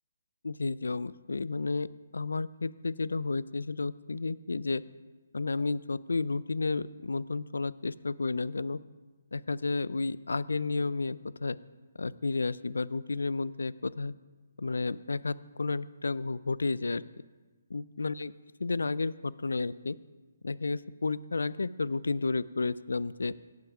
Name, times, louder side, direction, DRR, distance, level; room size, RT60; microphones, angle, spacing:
voice 1, 0.4-1.9 2.1-4.8 5.3-8.8 9.3-11.6 12.0-14.1 14.6-17.0 17.7-18.3 18.6-20.0 20.4-23.3, left 3 dB, 80° left, 19 dB, 0.4 m, -32 dB
17.5 x 5.9 x 4.9 m, 1.3 s
figure-of-eight pair, 145°, 0 cm